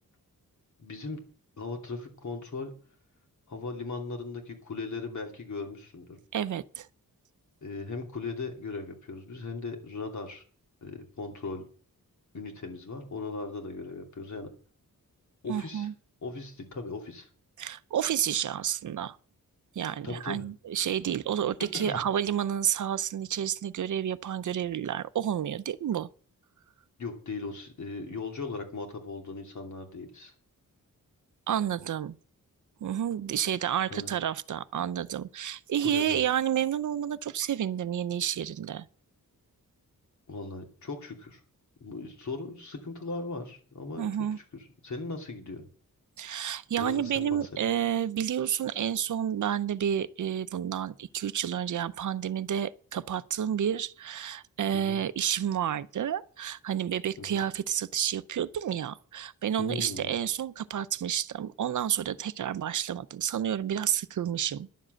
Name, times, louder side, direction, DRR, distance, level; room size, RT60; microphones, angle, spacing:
voice 1, 0.8-1.2 1.6-2.7 3.5-6.2 7.6-10.4 10.8-11.6 12.3-14.5 15.4-15.9 16.2-17.3 20.0-20.5 21.7-22.0 27.0-30.3 33.9-34.1 35.8-36.2 40.3-41.4 41.8-44.1 44.4-45.6 46.8-47.5 54.7-55.0 57.2-57.4 59.6-60.1, left 3 dB, 55° left, 2.8 m, -38 dB
voice 2, 6.3-6.9 15.5-15.9 17.6-19.2 19.8-26.1 31.5-32.2 32.8-38.9 44.0-44.4 46.2-64.7, right 9 dB, 60° right, 0.6 m, -30 dB
11.0 x 7.5 x 7.6 m
wide cardioid pair, 170°, 34 cm